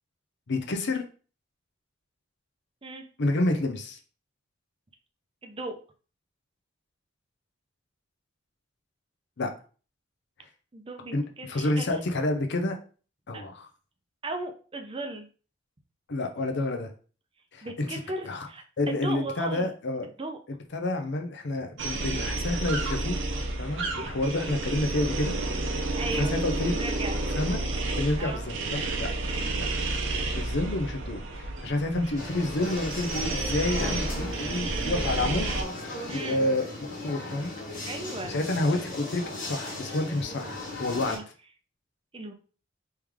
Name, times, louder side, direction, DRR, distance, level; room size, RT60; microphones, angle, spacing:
voice 1, 0.5-1.0 3.2-4.0 9.4-9.5 11.1-12.8 13.3-13.7 16.1-16.9 17.5-18.0 18.2-18.5 18.8-20.1 20.7-23.2 23.6-25.3 26.1-26.7 27.4-27.6 28.0-29.1 29.6-29.7 30.2-35.5 36.1-36.7 36.9-37.5 38.2-41.2, left 2 dB, 60° left, 5 dB, 0.7 m, -29 dB
voice 2, 5.4-5.8 10.7-11.9 13.3-13.4 14.2-15.3 17.6-19.7 20.2-20.4 23.8-24.2 25.9-27.2 28.2-28.4 29.2-29.5 36.1-36.4 37.8-38.3 41.0-41.2 42.1-42.3, right 2 dB, 25° right, 5 dB, 0.6 m, -37 dB
sound 1, 21.8-35.6, right 2 dB, 65° right, 0.7 m, -31 dB
sound 2, 32.1-41.2, left 2 dB, 45° left, 1.5 m, -37 dB
3.3 x 3.2 x 3.5 m, 0.38 s
head